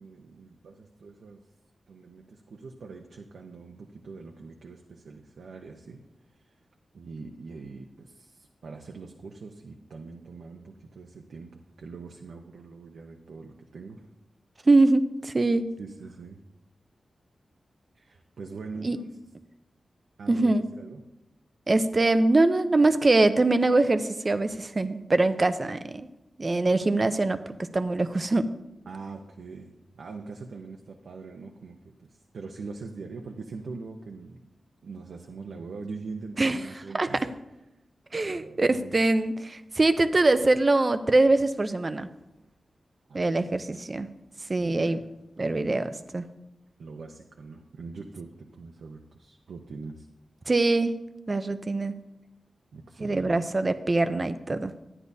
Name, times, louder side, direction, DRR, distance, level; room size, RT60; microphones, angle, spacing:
voice 1, 0.0-1.4 1.9-6.0 6.4-6.5 6.9-14.1 15.8-16.4 17.9-19.1 20.2-21.0 28.9-34.5 34.8-37.3 38.2-39.0 43.1-43.5 44.6-45.0 46.8-50.1 52.7-53.4, right 4 dB, 80° right, 2 dB, 0.7 m, -42 dB
voice 2, 14.6-15.6 18.8-19.0 20.3-20.7 21.7-26.1 26.4-27.4 27.7-28.5 36.4-36.6 36.9-37.1 38.1-42.1 43.1-44.1 44.5-45.0 45.4-46.3 50.5-51.0 51.3-51.9 53.0-54.7, right 2 dB, 30° right, 10 dB, 0.5 m, -23 dB
12.5 x 9.8 x 2.7 m, 0.93 s
wide cardioid pair, 105°, 0 cm